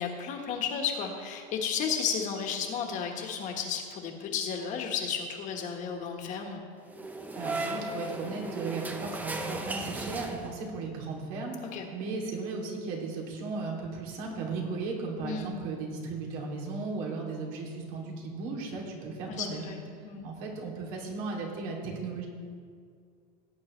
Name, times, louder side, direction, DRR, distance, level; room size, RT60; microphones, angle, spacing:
voice 1, 0.0-6.6 11.7-11.9 15.2-15.5 19.3-20.3, left 6 dB, 45° left, 3 dB, 1.5 m, -33 dB
sound 1, 6.9-10.8, right 2 dB, 10° right, 0.7 m, -36 dB
voice 2, 7.3-19.7 20.2-22.3, right 4 dB, 75° right, -2 dB, 2.8 m, -36 dB
16.5 x 9.3 x 3.2 m, 2.1 s
cardioid pair, 160°, 18 cm